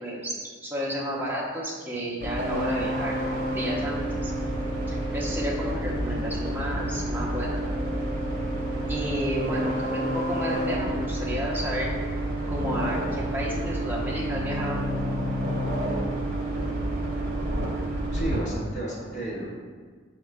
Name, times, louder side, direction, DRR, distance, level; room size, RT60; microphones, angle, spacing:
voice 1, 0.0-4.3 4.9-7.6 8.9-11.9 12.5-15.0, equal, 10° right, -5 dB, 0.6 m, -32 dB
sound 1, 2.2-18.4, right 1 dB, 45° right, 0.8 m, -29 dB
voice 2, 18.1-19.6, right 1 dB, 40° left, -5 dB, 1.0 m, -32 dB
5.3 x 2.2 x 4.6 m, 1.5 s
head